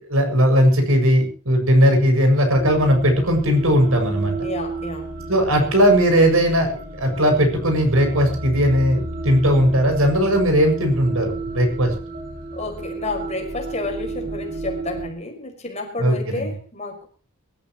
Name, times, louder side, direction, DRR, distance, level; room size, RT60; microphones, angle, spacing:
voice 1, 0.1-4.3 5.3-11.9 16.0-16.5, equal, 75° right, 5 dB, 6.9 m, -18 dB
sound 1, 2.6-15.1, right 2 dB, 45° right, 3.7 m, -32 dB
voice 2, 4.4-5.1 12.5-17.1, left 2 dB, 30° left, 3 dB, 5.4 m, -30 dB
23.5 x 14.5 x 3.1 m, 0.39 s
head